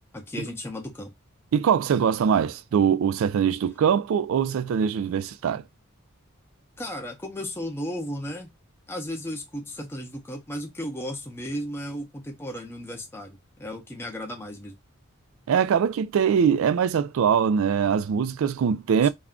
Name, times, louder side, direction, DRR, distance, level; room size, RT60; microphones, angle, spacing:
voice 1, 0.1-1.1 6.8-8.5 8.9-14.8 19.0-19.1, equal, 10° left, 0.5 m, -35 dB
voice 2, 1.5-5.6 15.5-19.1, right 7 dB, 65° right, 0.3 m, -22 dB
2.4 x 2.1 x 3.5 m
head